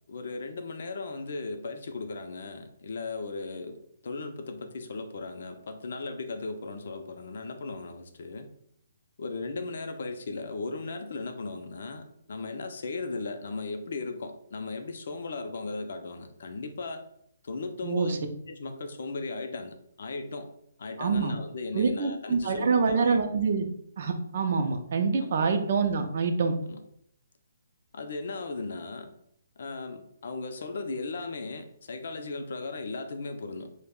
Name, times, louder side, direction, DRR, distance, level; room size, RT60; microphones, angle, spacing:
voice 1, 0.1-8.5 9.2-17.1 17.4-18.2 18.5-20.5 20.8-23.2 25.2-25.3 26.7-26.8 27.9-29.1 29.6-33.7, left 3 dB, 60° left, 6 dB, 0.4 m, -37 dB
voice 2, 17.8-18.2 21.0-21.3 21.7-23.7 24.0-26.5, right 5 dB, 50° right, 6 dB, 0.4 m, -26 dB
2.3 x 2.0 x 3.5 m, 0.70 s
hypercardioid pair, 160°, 0 cm